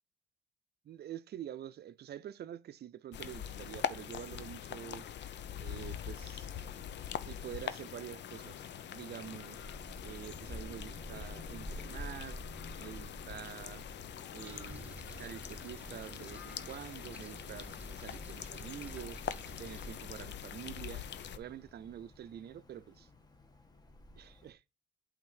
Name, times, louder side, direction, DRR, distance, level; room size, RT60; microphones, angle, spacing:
voice 1, 0.8-5.1 5.6-6.5 7.3-8.6 8.9-9.6 10.0-12.4 12.8-13.9 14.3-19.2 19.6-21.1 21.3-23.1 24.2-24.6, right 10 dB, 55° right, 0.5 m, -47 dB
sound 1, 3.1-21.4, left 9 dB, 60° left, 0.8 m, -43 dB
Wind, 5.9-24.5, left 1 dB, 20° left, 1.5 m, -51 dB
sound 2, 14.4-20.0, right 2 dB, 5° right, 0.4 m, -51 dB
8.4 x 3.6 x 6.4 m
cardioid pair, 90°, 20 cm